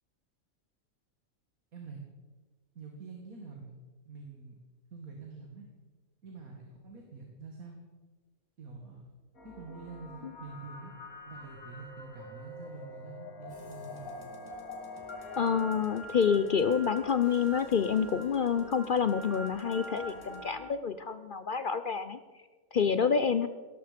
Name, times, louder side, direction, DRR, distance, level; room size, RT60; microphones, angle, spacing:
voice 1, 2.8-3.8 4.1-4.6 4.9-5.7 6.2-7.8 8.6-9.0 9.4-10.9 11.3-14.1, right 4 dB, 80° right, 1 dB, 2.4 m, -46 dB
sound 1, 9.3-20.7, left 1 dB, 80° left, 2.5 m, -45 dB
sound 2, 13.5-20.4, left 2 dB, 30° left, 2.0 m, -53 dB
voice 2, 15.4-22.2 22.7-23.5, left 6 dB, 55° left, 12 dB, 0.6 m, -28 dB
17.5 x 13.0 x 5.2 m, 1.3 s
omnidirectional pair, 1.5 m